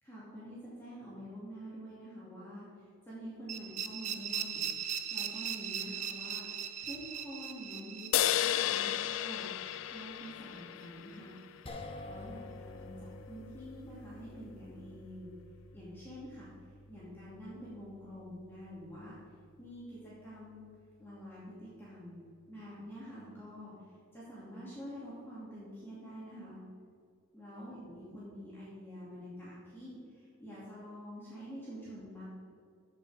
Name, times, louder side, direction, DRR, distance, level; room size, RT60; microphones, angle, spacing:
voice 1, 0.0-4.6 5.1-11.4 12.0-15.3 15.7-16.5 16.9-19.1 19.6-20.7 21.0-22.2 22.5-23.7 24.1-26.6 27.3-32.2, equal, 10° left, -9 dB, 2.3 m, -47 dB
sound 1, 3.5-10.3, right 8 dB, 35° right, 0.5 m, -39 dB
sound 2, 8.1-11.6, left 12 dB, 75° left, 0.3 m, -33 dB
sound 3, 11.7-24.0, left 2 dB, 30° left, 1.0 m, -52 dB
14.5 x 5.5 x 4.9 m, 2.2 s
head